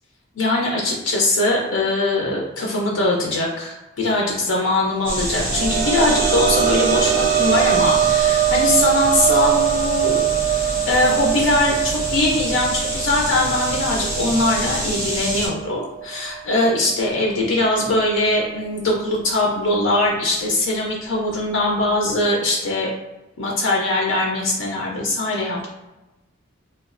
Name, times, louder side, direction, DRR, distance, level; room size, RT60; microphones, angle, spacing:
voice 1, 0.4-22.9 23.4-25.7, left 2 dB, 85° left, -2 dB, 0.5 m, -21 dB
sound 1, 5.0-15.5, equal, 15° right, 0.8 m, -27 dB
sound 2, 5.1-16.5 16.9-17.0 18.5-18.6, right 11 dB, 65° right, 0.3 m, -22 dB
3.0 x 2.3 x 2.4 m, 1.0 s
head